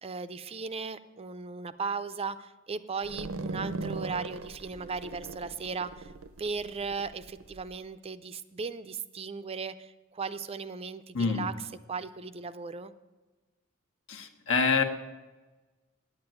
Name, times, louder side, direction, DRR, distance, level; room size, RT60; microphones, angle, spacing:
voice 1, 0.0-6.1 6.4-12.9, right 5 dB, 30° right, 12 dB, 0.4 m, -37 dB
sound 1, 3.0-7.7, right 3 dB, 75° right, 0.6 m, -39 dB
voice 2, 11.1-11.5 14.1-14.8, left 5 dB, 65° left, 5 dB, 1.3 m, -26 dB
9.0 x 8.8 x 9.1 m, 1.2 s
head